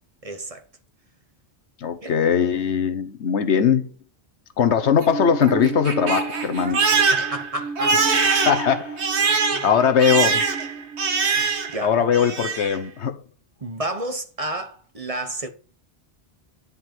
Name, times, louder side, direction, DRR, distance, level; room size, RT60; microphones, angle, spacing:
voice 1, 0.2-0.6 2.0-2.2 7.1-8.0 9.5-9.6 11.4-11.5 11.7-12.1 13.6-15.5, right 2 dB, 35° right, 1.1 m, -31 dB
voice 2, 1.8-3.9 4.6-6.8 8.1-9.0 9.6-10.5 11.8-13.2, left 7 dB, 85° left, 1.3 m, -20 dB
Crying sobbing, 4.8-11.8 12.1-12.8, right 5 dB, 85° right, 1.4 m, -23 dB
9.7 x 5.3 x 4.5 m
omnidirectional pair, 1.1 m